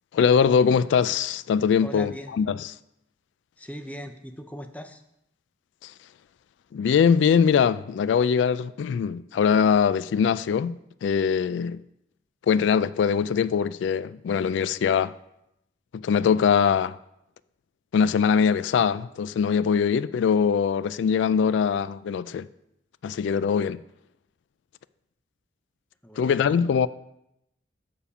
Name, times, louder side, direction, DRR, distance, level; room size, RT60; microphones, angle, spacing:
voice 1, 0.1-2.6 5.8-5.9 6.7-11.8 12.5-15.1 15.9-17.0 17.9-22.5 23.0-23.8 26.2-26.9, left 6 dB, 85° left, 0.3 m, -22 dB
voice 2, 1.8-2.3 3.6-5.0 26.0-26.6, equal, 10° left, 0.5 m, -39 dB
7.0 x 6.9 x 5.6 m
head